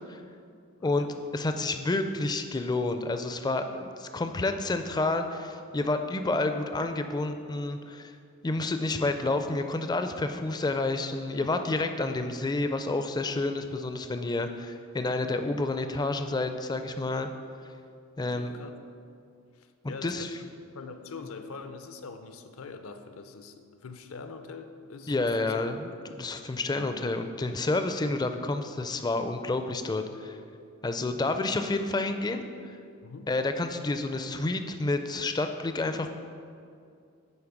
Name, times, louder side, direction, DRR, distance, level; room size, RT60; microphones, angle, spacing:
voice 1, 0.8-1.1 18.2-18.8 19.5-20.3 20.7-25.6 26.7-27.0 33.0-33.3, left 4 dB, 70° left, 8 dB, 0.6 m, -43 dB
voice 2, 1.3-8.1 8.4-17.3 18.2-18.5 19.8-20.3 25.1-30.4 30.8-32.8 33.3-36.2, left 2 dB, 20° left, 7 dB, 0.4 m, -29 dB
8.5 x 4.3 x 6.0 m, 2.3 s
head